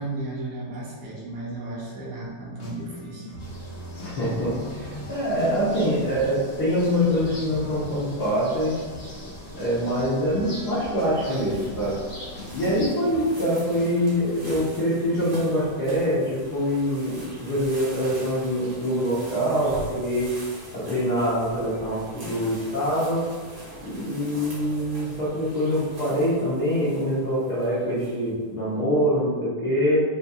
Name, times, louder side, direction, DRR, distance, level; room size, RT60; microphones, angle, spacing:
voice 1, 0.0-3.3, right 2 dB, 70° right, -5 dB, 1.6 m, -34 dB
groove rhodes, 2.6-15.4, left 1 dB, 60° left, 1.2 m, -42 dB
sound 1, 3.4-12.9, left 1 dB, 30° left, 0.9 m, -41 dB
voice 2, 4.0-4.5 4.8-8.7 9.5-11.9 12.5-20.3 20.7-23.2 23.8-30.0, equal, 80° left, -10 dB, 0.8 m, -24 dB
sound 2, 10.7-28.4, right 1 dB, 50° right, 0.9 m, -42 dB
6.9 x 2.7 x 2.4 m, 1.5 s
omnidirectional pair, 3.4 m